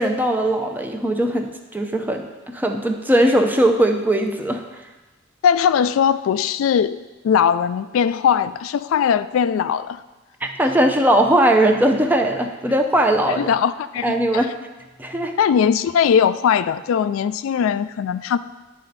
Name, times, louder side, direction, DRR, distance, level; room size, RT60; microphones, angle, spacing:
voice 1, 0.0-4.6 10.4-13.5 14.0-14.5 15.0-15.3, right 1 dB, 10° right, 4 dB, 0.6 m, -19 dB
voice 2, 5.4-7.0 7.2-10.0 13.3-14.1 15.4-18.4, left 7 dB, 85° left, 14 dB, 0.3 m, -19 dB
10.5 x 4.3 x 4.0 m, 1.2 s
head